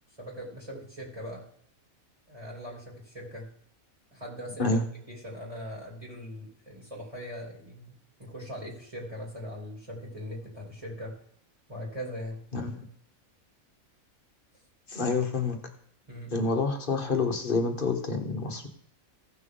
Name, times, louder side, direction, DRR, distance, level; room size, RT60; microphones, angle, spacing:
voice 1, 0.2-1.4 2.3-3.5 4.1-4.8 5.1-7.9 8.2-11.1 11.7-12.4 14.9-15.0 16.1-16.3, equal, 25° right, -4 dB, 3.1 m, -40 dB
voice 2, 12.5-12.8 14.9-15.6 16.3-18.7, left 3 dB, 40° left, 4 dB, 1.3 m, -28 dB
16.0 x 6.1 x 3.8 m, 0.65 s
omnidirectional pair, 1.5 m